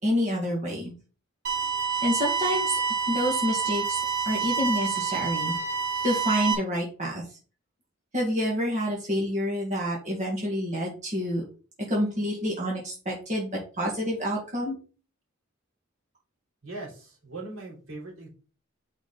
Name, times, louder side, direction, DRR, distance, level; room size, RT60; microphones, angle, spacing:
voice 1, 0.0-0.9 2.0-2.8 3.1-5.5 6.0-7.2 8.1-11.4 11.9-13.5 13.8-14.8, equal, 35° right, -3 dB, 1.8 m, -28 dB
sound 1, 1.4-6.5, right 6 dB, 50° right, 1.5 m, -28 dB
voice 2, 16.6-18.3, right 2 dB, 85° right, -4 dB, 3.3 m, -40 dB
5.0 x 4.1 x 5.2 m, 0.37 s
head